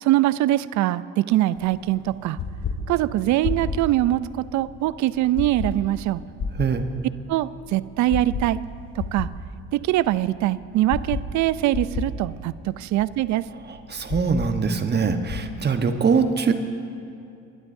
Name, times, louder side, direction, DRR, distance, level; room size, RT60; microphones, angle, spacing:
voice 1, 0.0-2.4 2.9-4.2 4.5-6.2 7.3-8.6 9.1-9.3 9.7-13.5, right 15 dB, 55° right, 17 dB, 0.5 m, -22 dB
sound 1, 1.6-15.5, left 4 dB, 55° left, 2.0 m, -33 dB
voice 2, 13.9-16.5, right 5 dB, 30° right, 7 dB, 1.2 m, -22 dB
29.5 x 12.0 x 2.7 m, 2.6 s
hypercardioid pair, 65°, 35 cm